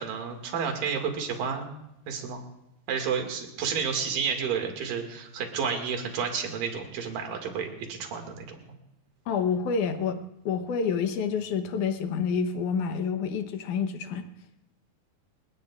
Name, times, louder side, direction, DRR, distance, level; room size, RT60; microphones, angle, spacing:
voice 1, 0.0-1.7 2.1-2.4 2.9-8.6, right 6 dB, 65° right, 3 dB, 3.6 m, -31 dB
voice 2, 9.3-10.2 10.5-14.3, left 6 dB, 65° left, 8 dB, 2.2 m, -28 dB
29.0 x 17.5 x 2.5 m, 0.87 s
omnidirectional pair, 4.3 m